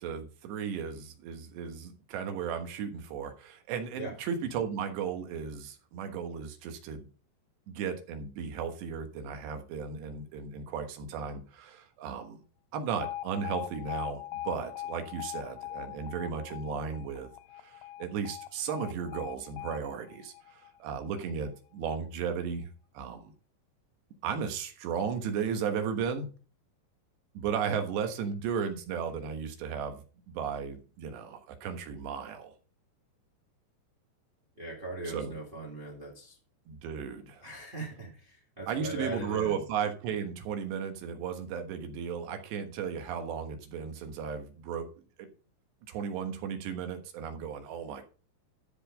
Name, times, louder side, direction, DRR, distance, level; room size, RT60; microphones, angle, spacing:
voice 1, 0.0-7.1 7.7-12.4 12.7-17.3 17.6-22.7 23.0-23.3 24.2-26.3 27.4-30.0 30.3-32.5 35.0-35.3 36.7-37.4 38.7-44.9 45.2-45.3 45.9-48.0, right 7 dB, 85° right, 3.6 m, -35 dB
Alarm, 13.0-21.1, left 13 dB, 85° left, 2.7 m, -41 dB
voice 2, 34.6-36.4 37.4-39.7, right 2 dB, 50° right, 0.6 m, -40 dB
12.5 x 4.7 x 5.1 m
omnidirectional pair, 4.9 m